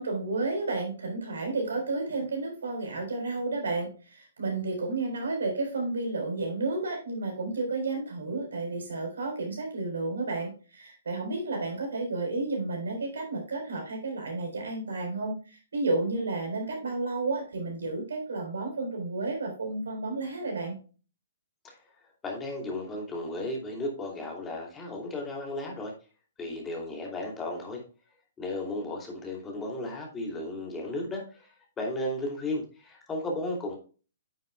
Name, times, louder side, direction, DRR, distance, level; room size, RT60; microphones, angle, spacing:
voice 1, 0.0-20.7, right 3 dB, 75° right, 1 dB, 3.9 m, -31 dB
voice 2, 22.2-25.9 26.4-27.8 28.4-33.8, left 1 dB, 15° left, 0 dB, 2.6 m, -34 dB
9.4 x 7.1 x 2.2 m, 0.36 s
hypercardioid pair, 125°, 0 cm